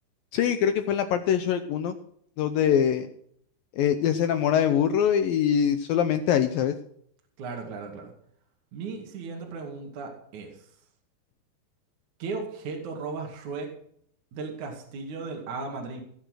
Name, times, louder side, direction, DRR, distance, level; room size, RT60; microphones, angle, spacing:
voice 1, 0.3-2.0 2.4-3.1 3.7-6.8, left 9 dB, 80° left, 9 dB, 2.1 m, -23 dB
voice 2, 7.4-8.1 8.7-10.7 12.2-13.7 14.3-16.0, right 4 dB, 50° right, 1 dB, 3.2 m, -36 dB
18.0 x 7.7 x 6.3 m, 0.67 s
omnidirectional pair, 5.0 m